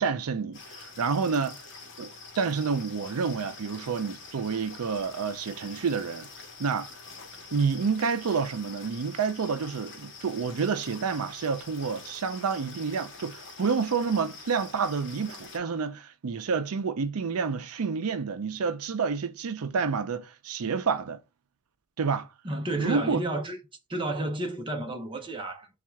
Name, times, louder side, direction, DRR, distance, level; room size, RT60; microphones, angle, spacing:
voice 1, 0.0-1.6 2.0-2.1 2.4-6.3 6.6-6.9 7.5-21.2 22.0-22.3 22.8-23.2, right 5 dB, 80° right, 0.5 m, -29 dB
sound 1, 0.5-15.6, left 4 dB, 55° left, 1.0 m, -46 dB
voice 2, 22.4-23.6 23.9-25.7, right 1 dB, 25° right, 0.7 m, -31 dB
3.6 x 2.4 x 4.3 m
head